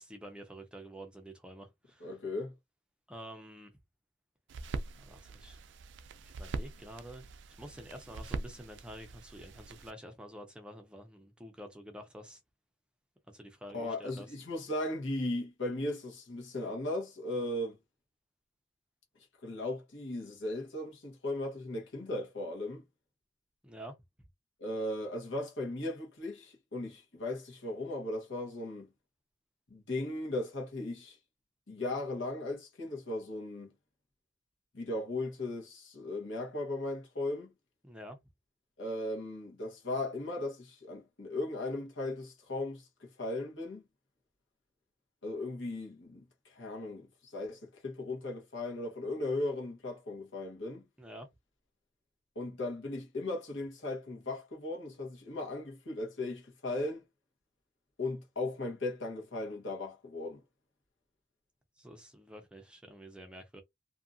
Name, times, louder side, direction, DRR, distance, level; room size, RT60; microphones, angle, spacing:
voice 1, 0.0-2.1 3.1-3.7 5.1-5.6 6.2-7.2 7.6-12.4 13.3-14.3 23.6-23.9 37.8-38.2 51.0-51.3 61.8-63.6, equal, 5° right, 0.5 m, -48 dB
voice 2, 2.0-2.5 13.7-17.8 19.4-22.8 24.6-28.9 29.7-31.2 31.7-33.7 34.7-37.5 38.8-43.8 45.2-50.8 52.3-57.0 58.0-60.4, left 2 dB, 80° left, 1.2 m, -37 dB
sound 1, 4.5-9.9, right 3 dB, 70° right, 0.4 m, -42 dB
2.7 x 2.5 x 2.5 m
head